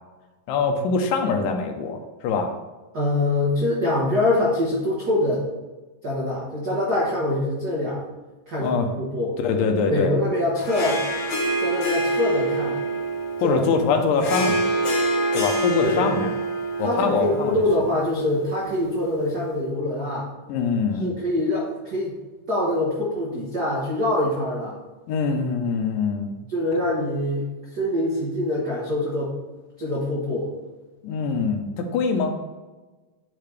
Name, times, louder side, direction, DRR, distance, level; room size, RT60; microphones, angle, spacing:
voice 1, 0.5-2.5 8.6-8.9 9.4-10.1 13.4-14.7 15.3-16.3 16.8-17.6 20.5-21.1 25.1-26.4 31.0-32.3, left 4 dB, 90° left, 5 dB, 2.4 m, -23 dB
voice 2, 2.9-5.5 6.0-8.0 8.5-9.4 9.9-11.0 11.6-12.8 13.4-13.6 15.8-16.1 16.8-20.3 21.0-22.1 22.5-24.8 26.5-27.5 27.7-29.3 29.8-30.5, left 1 dB, 85° right, -5 dB, 0.8 m, -24 dB
Harp, 10.6-19.2, right 2 dB, 55° left, 1.7 m, -26 dB
10.0 x 3.7 x 3.3 m, 1.2 s
omnidirectional pair, 3.8 m